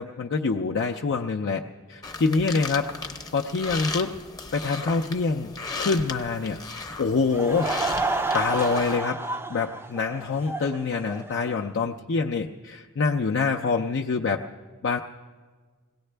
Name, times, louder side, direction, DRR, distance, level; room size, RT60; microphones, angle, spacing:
voice 1, 0.0-1.6 1.9-4.2 4.5-6.6 7.0-7.7 8.3-9.2 9.5-14.4 14.8-15.0, left 4 dB, 55° left, 1 dB, 0.5 m, -26 dB
sound 1, 2.0-9.0, left 3 dB, 15° left, 0.8 m, -36 dB
Laughter / Crowd, 7.2-11.7, right 3 dB, 10° right, 0.5 m, -30 dB
21.0 x 17.5 x 3.3 m, 1.5 s
head